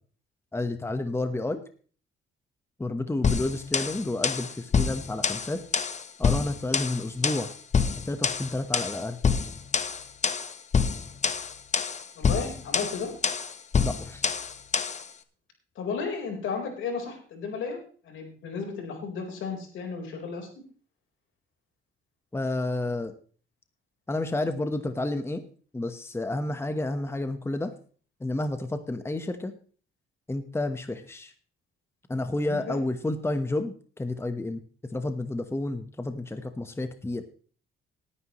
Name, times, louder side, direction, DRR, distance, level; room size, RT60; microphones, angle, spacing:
voice 1, 0.5-1.6 2.8-5.6 6.2-7.5 7.9-9.2 13.8-14.3 22.3-23.1 24.1-25.5 25.7-27.7 28.2-29.5 30.3-31.3 32.1-34.6 34.9-37.2, left 2 dB, 10° left, 9 dB, 1.1 m, -30 dB
sound 1, 3.2-15.1, left 5 dB, 35° left, 1.0 m, -27 dB
voice 2, 12.2-13.1 15.8-17.8 18.0-20.5 32.4-32.8, left 5 dB, 75° left, 2 dB, 4.2 m, -33 dB
18.5 x 9.9 x 3.1 m, 0.42 s
cardioid pair, 90°, 20 cm